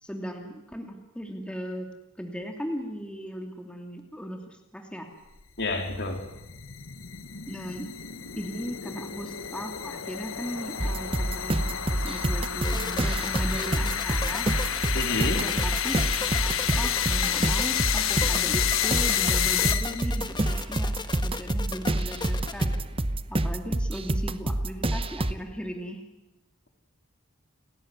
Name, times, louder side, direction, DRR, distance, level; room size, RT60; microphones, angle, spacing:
voice 1, 0.0-1.9 2.2-5.1 7.5-7.9 8.3-14.5 15.4-22.7 23.3-26.0, equal, 5° left, 2 dB, 2.7 m, -37 dB
sound 1, 5.4-20.2, left 10 dB, 75° left, 1.5 m, -30 dB
voice 2, 5.6-6.2 14.9-15.5, left 2 dB, 55° left, 4 dB, 4.1 m, -29 dB
sound 2, 10.8-25.3, right 1 dB, 25° right, 1.0 m, -28 dB
sound 3, 12.6-22.8, left 4 dB, 20° left, 1.5 m, -36 dB
29.5 x 18.5 x 9.7 m, 0.98 s
head